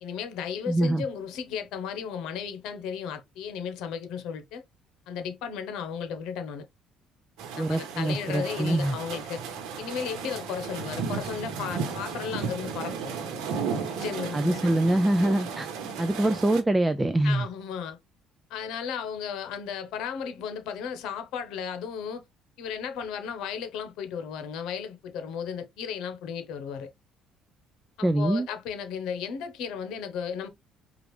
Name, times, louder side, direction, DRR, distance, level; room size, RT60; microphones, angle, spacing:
voice 1, 0.0-4.6 5.1-6.6 7.5-9.4 9.8-13.1 13.9-14.6 17.2-18.0 18.5-22.2 22.6-26.9 28.0-30.5, left 7 dB, 80° left, 0.9 m, -35 dB
voice 2, 0.7-1.0 7.6-9.0 14.3-15.7 16.0-17.5 28.0-28.5, right 1 dB, 10° right, 0.3 m, -24 dB
sound 1, 7.4-16.6, right 6 dB, 85° right, 1.1 m, -34 dB
4.9 x 2.5 x 3.2 m
cardioid pair, 125°, 0 cm